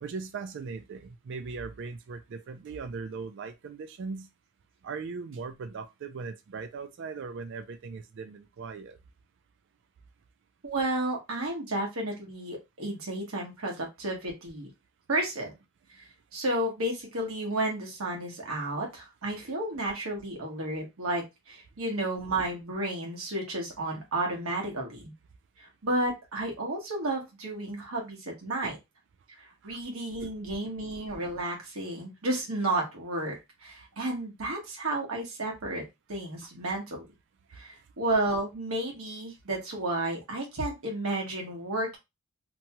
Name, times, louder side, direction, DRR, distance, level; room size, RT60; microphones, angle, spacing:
voice 1, 0.0-4.3 4.8-9.0 19.4-19.5 28.6-28.7 29.6-29.8 30.2-30.3, right 4 dB, 60° right, 0.4 m, -39 dB
voice 2, 10.6-14.7 15.1-15.5 16.3-25.1 25.6-28.8 29.6-33.4 33.6-35.8 36.1-37.0 37.5-42.0, right 1 dB, 80° right, 1.2 m, -32 dB
2.9 x 2.2 x 2.8 m
head